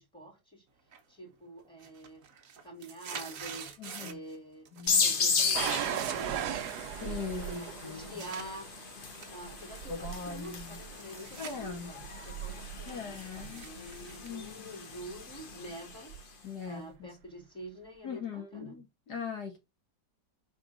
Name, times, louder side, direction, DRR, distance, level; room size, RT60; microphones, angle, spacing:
voice 1, 0.0-2.3 2.6-4.7 5.0-6.6 7.0-8.7 9.2-16.3 16.7-18.8, right 1 dB, 5° left, 2.3 m, -47 dB
sound 1, 0.9-1.3 1.6-4.4 4.7-5.2 5.4-8.5 9.0-11.6 11.9-15.1, right 7 dB, 60° right, 1.2 m, -47 dB
voice 2, 3.8-4.2 4.7-5.1 7.0-8.2 9.9-10.8 11.4-11.9 12.9-13.7 14.2-14.7 16.4-17.1 18.0-19.6, left 5 dB, 70° left, 1.9 m, -40 dB
sound 2, 4.9-16.2, left 5 dB, 45° left, 0.8 m, -35 dB
sound 3, 5.5-14.3 15.1-15.5 16.1-16.2, right 11 dB, 75° right, 1.1 m, -39 dB
5.0 x 3.7 x 5.0 m
omnidirectional pair, 1.8 m